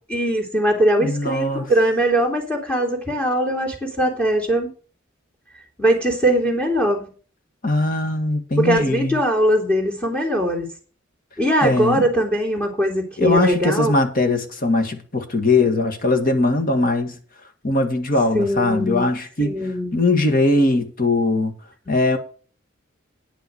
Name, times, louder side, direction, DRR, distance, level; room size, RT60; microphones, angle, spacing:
voice 1, 0.1-4.7 5.8-7.0 8.6-10.7 11.4-13.9 18.3-19.1 19.4-20.0 21.9-22.0, right 1 dB, 10° left, 3.0 m, -21 dB
voice 2, 1.0-1.6 7.6-9.2 11.6-12.1 13.2-17.2 17.6-19.5 19.9-21.5 21.9-22.2, left 2 dB, 45° left, 1.8 m, -20 dB
10.0 x 5.7 x 8.1 m
head